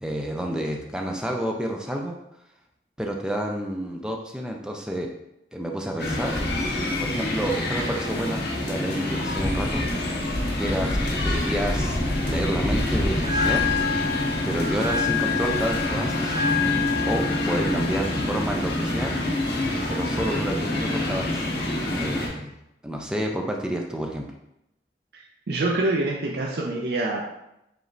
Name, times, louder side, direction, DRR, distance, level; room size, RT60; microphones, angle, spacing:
voice 1, 0.0-2.2 3.0-5.1 5.5-6.3 6.9-9.8 10.6-12.0 12.3-13.6 14.4-16.4 17.1-19.2 19.9-21.5 21.9-22.5 22.8-24.3, right 1 dB, 5° right, 1 dB, 0.4 m, -29 dB
sound 1, 6.0-22.3, left 1 dB, 70° left, 0.8 m, -27 dB
Bell, 13.1-21.1, left 5 dB, 30° right, 0.9 m, -29 dB
voice 2, 25.1-27.2, right 2 dB, 65° right, -1 dB, 0.5 m, -26 dB
4.9 x 3.1 x 2.6 m, 0.85 s
head